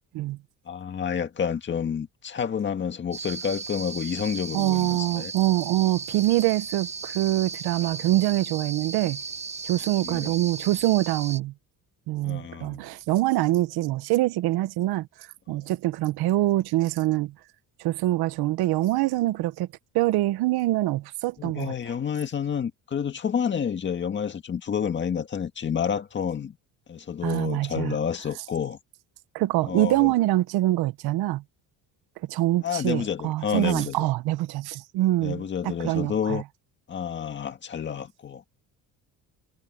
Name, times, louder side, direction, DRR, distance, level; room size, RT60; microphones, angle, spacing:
voice 1, 0.7-5.3 10.0-10.3 12.2-12.9 15.5-15.6 21.4-26.6 26.9-28.8 29.6-30.1 32.6-34.0 35.2-36.4 36.9-38.6, left 7 dB, 30° left, 1.8 m, -29 dB
sound 1, 3.1-11.4, right 5 dB, 20° right, 0.9 m, -36 dB
voice 2, 4.5-9.2 9.6-11.5 12.1-15.1 15.5-17.3 17.8-19.7 19.9-21.7 27.2-27.9 29.3-31.4 32.3-36.4, right 16 dB, 80° right, 1.0 m, -24 dB
cardioid pair, 170°, 37 cm